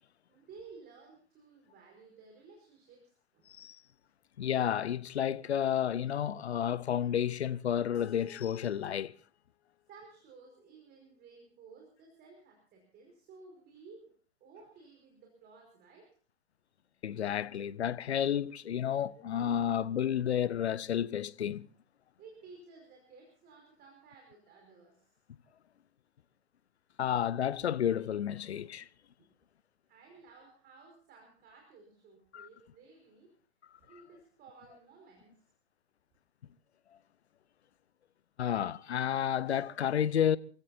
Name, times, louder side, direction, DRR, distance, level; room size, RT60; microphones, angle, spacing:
voice 1, 0.3-3.5 9.9-14.1 14.4-16.1 22.2-25.1 29.2-29.3 29.9-33.3 33.8-35.4, right 4 dB, 30° right, 5.2 m, -55 dB
voice 2, 4.4-9.1 17.0-21.7 27.0-28.9 32.3-32.5 38.4-40.4, left 9 dB, 80° left, 0.8 m, -31 dB
Keyboard (musical), 7.9-10.9, left 14 dB, 45° left, 2.5 m, -56 dB
27.5 x 16.0 x 2.7 m
hypercardioid pair, 110°, 32 cm